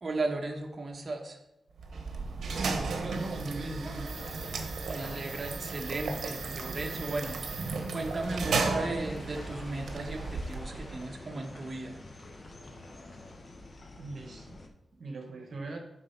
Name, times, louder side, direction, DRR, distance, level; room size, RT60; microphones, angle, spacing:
voice 1, 0.0-1.4 4.8-12.0, right 2 dB, 45° right, 1 dB, 1.2 m, -36 dB
sound 1, 1.8-11.1, right 4 dB, 85° right, 0.9 m, -35 dB
sound 2, 2.6-14.7, left 2 dB, 50° left, 1.1 m, -49 dB
voice 2, 2.9-4.1 14.0-15.8, right 2 dB, 65° right, 2 dB, 1.2 m, -40 dB
sound 3, 3.3-13.4, equal, 10° left, 1.6 m, -51 dB
7.5 x 4.1 x 5.8 m, 0.88 s
cardioid pair, 65°, 0 cm